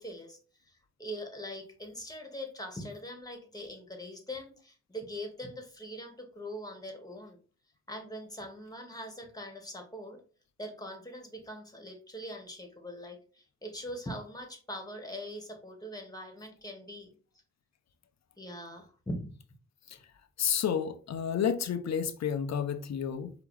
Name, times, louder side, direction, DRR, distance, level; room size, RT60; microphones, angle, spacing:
voice 1, 0.0-7.4 7.9-10.2 10.6-17.1 18.4-19.3, equal, 15° left, 1.9 m, -42 dB
voice 2, 20.4-23.3, left 8 dB, 65° left, 0.7 m, -30 dB
4.7 x 3.0 x 3.3 m
supercardioid pair, 50°, 29 cm